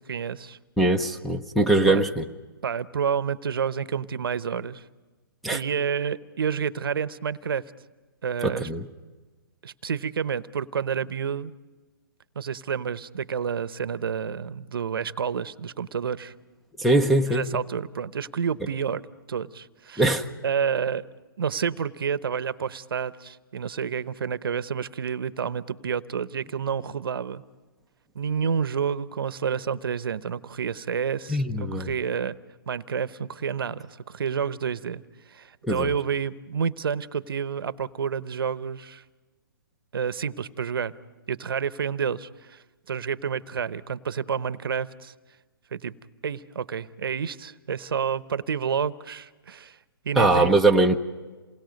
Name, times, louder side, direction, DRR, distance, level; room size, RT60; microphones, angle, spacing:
voice 1, 0.0-0.6 1.9-2.0 2.6-4.8 5.5-7.6 8.2-8.7 9.6-11.5 12.3-16.3 17.3-19.0 19.3-20.1 20.4-21.1 21.4-27.4 28.1-32.3 32.7-35.0 35.3-39.0 39.9-40.9 41.3-45.1 45.7-45.9 46.2-49.8 50.0-50.5, right 7 dB, 75° right, 0.9 m, -29 dB
voice 2, 0.8-2.2 5.4-5.6 8.4-8.9 16.8-17.6 20.0-20.3 31.3-31.9 35.6-35.9 50.2-51.0, right 2 dB, ahead, 0.9 m, -21 dB
28.0 x 20.0 x 5.2 m
hypercardioid pair, 145°, 12 cm